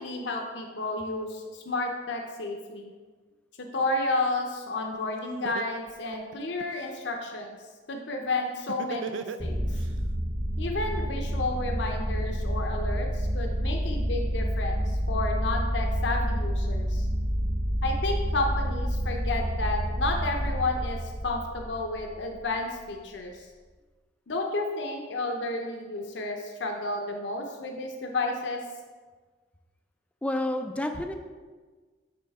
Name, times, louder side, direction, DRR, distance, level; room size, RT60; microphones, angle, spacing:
voice 1, 0.0-2.9 3.6-7.5 7.9-9.6 10.6-17.0 17.8-23.5 24.3-28.6, left 2 dB, 70° left, 2 dB, 0.7 m, -31 dB
Laughter, 4.9-5.0 5.4-6.9 8.7-9.9, right 5 dB, 80° right, 0.3 m, -36 dB
sound 1, 9.4-22.3, equal, 15° right, 1.1 m, -29 dB
voice 2, 30.2-31.1, left 1 dB, 5° left, 6 dB, 0.3 m, -29 dB
8.7 x 3.7 x 3.5 m, 1.4 s
head